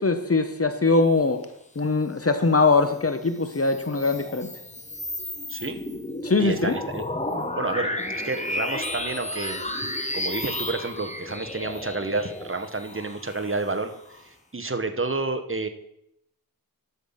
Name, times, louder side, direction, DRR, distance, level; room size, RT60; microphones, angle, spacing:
voice 1, 0.0-1.5 1.8-4.5 6.2-6.8, left 3 dB, 40° left, 8 dB, 0.8 m, -22 dB
sound 1, 3.3-14.2, left 1 dB, 20° left, 1.2 m, -33 dB
voice 2, 6.4-7.0 7.5-9.6 10.1-13.9 14.2-15.7, right 3 dB, 35° right, 8 dB, 1.1 m, -30 dB
11.0 x 7.0 x 5.7 m, 0.78 s
wide cardioid pair, 55°, 35 cm